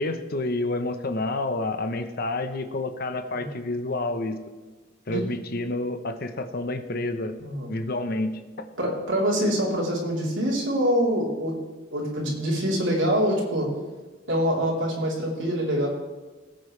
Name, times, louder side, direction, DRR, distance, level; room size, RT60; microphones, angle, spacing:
voice 1, 0.0-4.4 5.1-7.3 7.7-8.4, left 2 dB, 50° left, 8 dB, 1.0 m, -29 dB
voice 2, 7.4-7.7 8.8-11.5 11.9-13.7 14.3-15.9, equal, 80° right, -4 dB, 3.6 m, -25 dB
19.0 x 8.9 x 3.3 m, 1.3 s
head